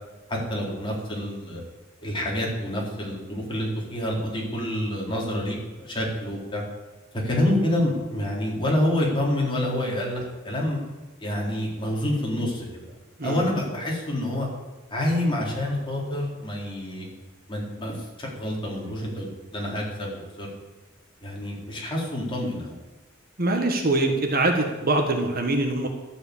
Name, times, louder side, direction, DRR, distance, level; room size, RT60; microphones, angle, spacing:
voice 1, 0.3-1.6 2.0-6.6 7.1-10.8 11.2-12.9 13.2-14.5 14.9-17.1 17.5-19.3 19.5-20.5 21.2-22.8, left 1 dB, 25° left, -3 dB, 4.0 m, -27 dB
voice 2, 23.4-25.9, right 2 dB, 45° right, 4 dB, 1.6 m, -23 dB
12.5 x 7.8 x 8.6 m, 1.2 s
head